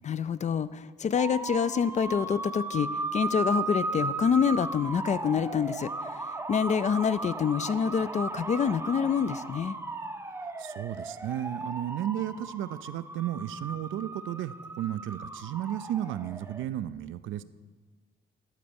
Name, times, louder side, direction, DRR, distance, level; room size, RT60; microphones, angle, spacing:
voice 1, 0.0-9.8, left 7 dB, 35° left, 15 dB, 0.4 m, -27 dB
sound 1, 1.2-16.6, right 2 dB, 10° right, 0.6 m, -36 dB
voice 2, 10.3-17.4, right 12 dB, 80° right, 14 dB, 0.4 m, -34 dB
12.0 x 4.2 x 7.0 m, 1.4 s
cardioid pair, 90°, 20 cm